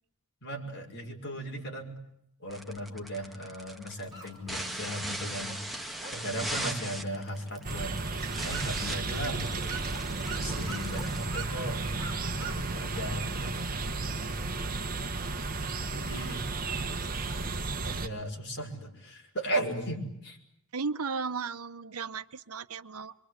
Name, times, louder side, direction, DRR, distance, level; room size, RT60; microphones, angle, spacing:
voice 1, 0.4-2.0 2.4-5.6 6.1-7.9 8.4-9.7 10.3-11.8 12.4-13.7 15.9-16.5 17.8-20.4, right 1 dB, 55° left, 2 dB, 5.7 m, -37 dB
sound 1, 2.5-12.0, right 1 dB, ahead, 1.9 m, -40 dB
sound 2, 4.1-13.0, right 4 dB, 20° right, 6.0 m, -46 dB
sound 3, 7.6-18.1, right 3 dB, 40° right, 1.4 m, -33 dB
voice 2, 20.7-23.1, right 5 dB, 85° right, 12 dB, 1.0 m, -35 dB
26.5 x 24.0 x 8.1 m, 0.78 s
head